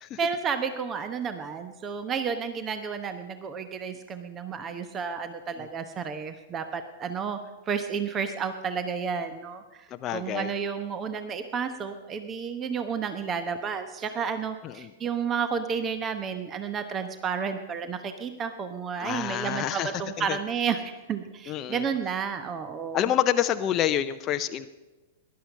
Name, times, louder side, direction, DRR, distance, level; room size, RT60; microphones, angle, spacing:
voice 1, 0.2-7.4 7.7-23.1, right 6 dB, 25° right, 9 dB, 1.0 m, -31 dB
voice 2, 9.9-10.5 14.6-14.9 19.0-19.9 20.2-20.4 21.5-21.8 22.9-24.7, left 11 dB, 30° left, 10 dB, 0.6 m, -28 dB
18.5 x 11.5 x 5.5 m, 1.2 s
figure-of-eight pair, 100°, 0 cm